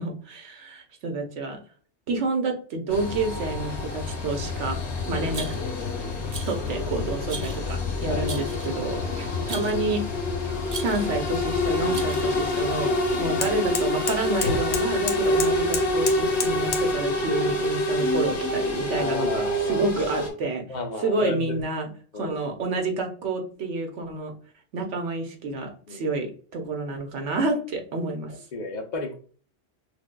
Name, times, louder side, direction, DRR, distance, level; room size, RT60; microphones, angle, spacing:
voice 1, 0.0-1.6 2.1-4.8 5.1-5.5 6.5-20.6 21.0-24.3 24.7-28.3, right 3 dB, 75° right, 1.2 m, -29 dB
sound 1, 2.9-20.3, left 1 dB, 65° left, 1.4 m, -27 dB
Rattle, 5.3-5.8 6.3-6.7 7.3-7.7 8.3-8.8 9.5-9.9 10.7-11.2 11.9-12.5, right 4 dB, 40° right, 0.7 m, -38 dB
voice 2, 8.1-8.4 9.1-9.2 13.1-13.3 18.9-19.9 20.7-21.6 22.1-22.4 25.9-26.1 28.5-29.2, left 2 dB, 50° left, 0.6 m, -32 dB
sound 2, 11.1-16.9, left 6 dB, 80° left, 1.1 m, -35 dB
6.2 x 2.3 x 2.2 m
omnidirectional pair, 1.3 m